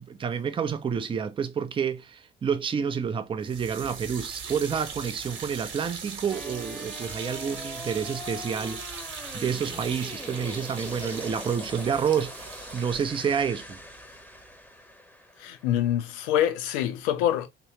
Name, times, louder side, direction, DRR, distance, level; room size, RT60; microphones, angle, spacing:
voice 1, 0.0-8.8 9.3-12.5 12.7-13.8, right 7 dB, 20° right, 0.4 m, -29 dB
sound 1, 3.4-14.5, right 6 dB, 40° right, 1.1 m, -40 dB
sound 2, 6.3-16.4, left 1 dB, 5° left, 0.8 m, -42 dB
voice 2, 15.4-17.5, left 11 dB, 65° left, 0.7 m, -25 dB
3.1 x 2.9 x 2.8 m
figure-of-eight pair, 55°, 30 cm